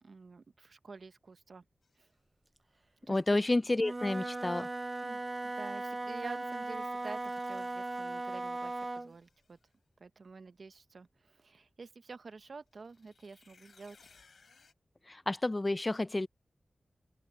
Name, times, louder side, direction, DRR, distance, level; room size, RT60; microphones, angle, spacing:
voice 1, 0.0-1.6 2.0-2.1 3.1-3.4 5.0-9.6 10.0-14.0, right 4 dB, 65° right, 0.9 m, -48 dB
sound 1, 1.8-2.1 6.5-8.6 9.0-9.7 12.7-14.7, left 5 dB, 80° left, 3.2 m, -64 dB
voice 2, 3.1-4.7 15.1-16.3, left 2 dB, 30° left, 0.5 m, -30 dB
Wind instrument woodwind instrument, 3.7-9.1, right 2 dB, 35° right, 0.3 m, -38 dB
open air
wide cardioid pair, 70°, 0 cm